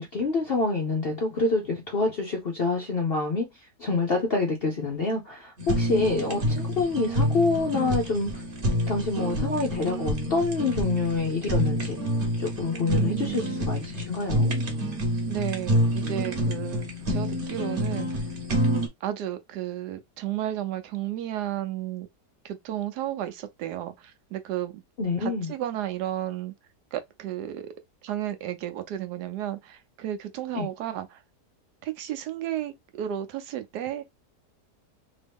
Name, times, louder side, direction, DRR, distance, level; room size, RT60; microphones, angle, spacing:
voice 1, 0.0-3.5 3.8-8.4 8.9-12.0 12.4-14.5 25.0-25.5 30.5-30.7, left 3 dB, 60° left, 0.6 m, -27 dB
Fire, 5.6-18.9, equal, 40° right, 1.0 m, -27 dB
voice 2, 12.8-13.6 15.3-18.2 19.0-22.1 22.4-24.8 25.2-26.5 26.9-27.7 28.0-31.2 31.8-34.0, right 12 dB, 75° right, 1.1 m, -33 dB
3.0 x 2.7 x 3.4 m
omnidirectional pair, 1.8 m